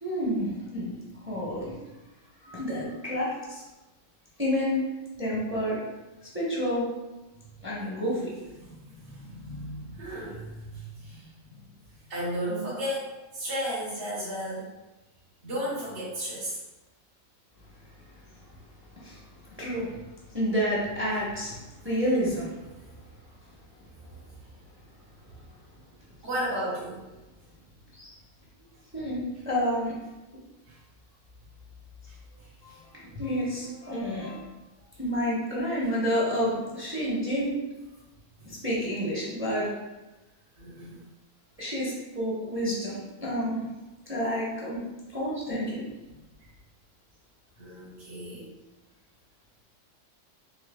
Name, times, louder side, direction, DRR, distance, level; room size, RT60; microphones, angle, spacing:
voice 1, 0.0-1.8 2.4-3.6 4.4-4.8 5.2-5.8 6.3-6.9 7.6-8.3 19.0-19.2 19.6-19.9 20.3-21.6 21.8-22.7 27.9-28.1 28.9-29.9 32.6-32.7 33.1-34.4 35.0-37.5 38.4-39.7 41.6-43.6 44.1-44.8 45.1-45.8, equal, 10° right, -6 dB, 0.7 m, -29 dB
voice 2, 8.6-11.6 12.1-14.7 15.4-16.6 26.2-27.0 30.7-30.8 32.7-32.8 40.6-41.0 47.6-48.4, equal, 40° right, -10 dB, 1.3 m, -34 dB
4.9 x 2.9 x 2.3 m, 1.1 s
omnidirectional pair, 1.7 m